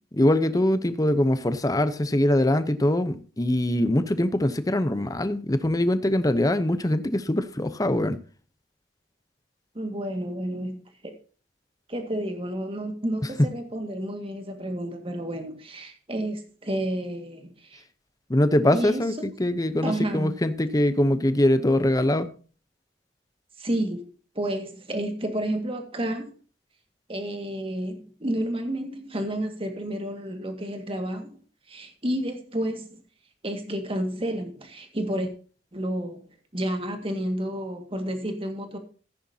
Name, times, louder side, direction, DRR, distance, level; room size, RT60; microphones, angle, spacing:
voice 1, 0.1-8.2 13.4-13.5 18.3-22.3, left 1 dB, 20° left, 0.8 m, -23 dB
voice 2, 9.7-10.8 11.9-17.8 18.7-19.0 19.8-20.3 23.6-24.1 24.4-26.4 27.1-31.4 31.7-33.0 33.4-35.3 35.7-36.2 36.5-38.8, right 1 dB, 30° right, 1.9 m, -30 dB
14.5 x 10.0 x 2.8 m
head